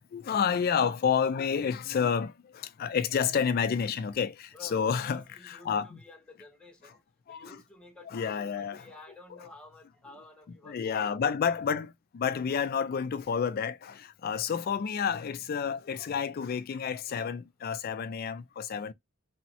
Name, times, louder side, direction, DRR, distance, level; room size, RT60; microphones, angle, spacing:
voice 1, 0.1-6.0 7.3-7.6 8.1-8.8 10.6-18.9, left 7 dB, 45° left, 0.3 m, -30 dB
voice 2, 4.5-7.0 7.3-11.2 14.4-14.7, left 3 dB, 5° left, 0.7 m, -51 dB
3.4 x 2.0 x 2.7 m
head